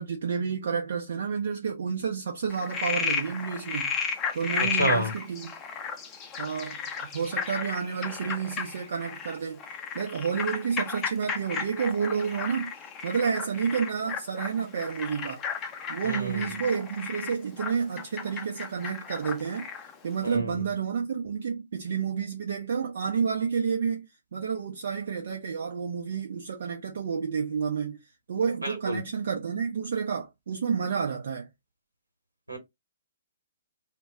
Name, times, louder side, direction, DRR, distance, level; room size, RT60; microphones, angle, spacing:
voice 1, 0.0-3.9 4.3-5.5 6.4-9.6 9.9-12.7 13.0-15.4 15.9-19.7 20.0-28.0 28.3-31.5, right 6 dB, 55° right, 0.6 m, -30 dB
Frog, 2.5-19.9, left 6 dB, 20° left, 0.4 m, -34 dB
voice 2, 4.6-5.1 16.0-16.4 20.2-20.5 28.6-29.0 32.5-32.6, right 1 dB, 85° right, 1.1 m, -29 dB
2.1 x 2.1 x 3.5 m
figure-of-eight pair, 125°, 0 cm